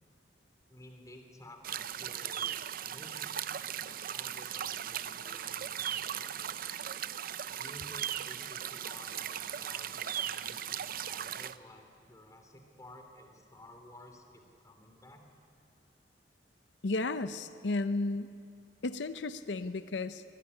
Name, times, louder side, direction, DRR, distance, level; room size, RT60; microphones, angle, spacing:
voice 1, 0.7-2.4 2.8-6.8 7.5-15.3, left 1 dB, 20° left, 4 dB, 3.1 m, -54 dB
sound 1, 1.6-11.5, right 10 dB, 55° right, 0.6 m, -38 dB
voice 2, 16.8-18.4 18.8-20.2, left 2 dB, 90° left, 12 dB, 0.7 m, -33 dB
24.0 x 17.0 x 9.9 m, 2.4 s
head